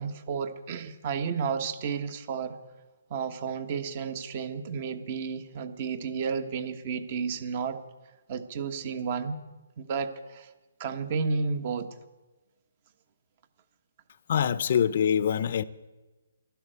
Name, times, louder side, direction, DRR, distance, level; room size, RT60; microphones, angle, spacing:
voice 1, 0.0-2.5 3.1-7.8 8.3-9.4 9.8-10.5 10.8-11.9, right 5 dB, 40° right, 1.3 m, -32 dB
voice 2, 14.3-15.6, left 8 dB, 55° left, 0.6 m, -24 dB
12.0 x 11.5 x 8.0 m
hypercardioid pair, 150°, 0 cm